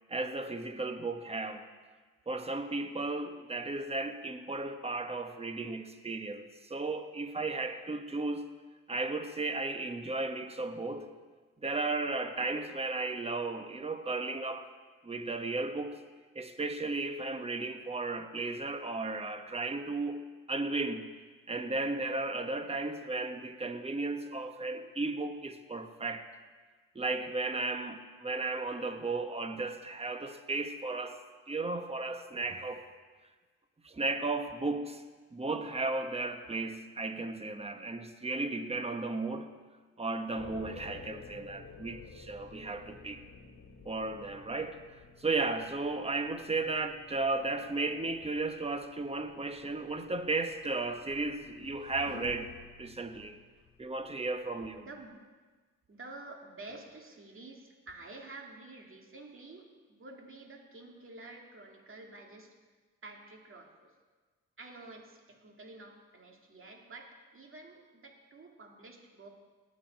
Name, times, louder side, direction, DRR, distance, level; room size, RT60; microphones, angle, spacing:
voice 1, 0.1-1.6 2.3-8.5 8.9-11.1 11.6-14.7 15.0-16.0 16.3-20.2 20.5-21.1 21.5-26.3 26.9-31.2 31.5-32.8 33.8-35.0 35.3-39.5 40.0-43.2 43.8-44.8 45.2-53.4 53.8-54.8, right 3 dB, 20° right, 7 dB, 1.2 m, -35 dB
sound 1, 40.4-55.2, left 5 dB, 40° left, 2.2 m, -54 dB
sound 2, 50.3-53.7, left 7 dB, 85° left, 1.4 m, -51 dB
voice 2, 54.8-55.2 55.9-62.6 63.0-63.9 64.6-69.3, right 2 dB, 35° right, 2 dB, 2.4 m, -50 dB
18.5 x 7.6 x 4.6 m, 1.4 s
supercardioid pair, 65°, 34 cm